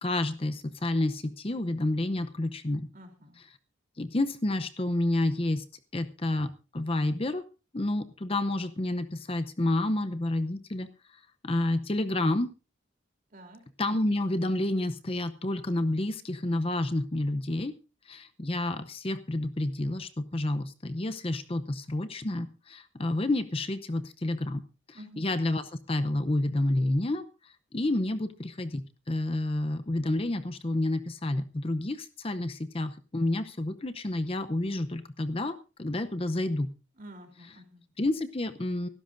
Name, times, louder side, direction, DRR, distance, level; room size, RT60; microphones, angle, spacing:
voice 1, 0.0-2.9 4.0-5.7 5.9-6.5 6.7-7.4 7.7-10.9 11.4-12.5 13.8-17.7 18.1-24.6 24.9-36.7 38.0-38.9, left 1 dB, 30° left, 10 dB, 0.7 m, -29 dB
voice 2, 2.9-3.4 13.3-13.7 24.9-25.2 37.0-37.8, equal, 40° right, 3 dB, 3.4 m, -49 dB
24.5 x 12.5 x 2.6 m, 0.32 s
head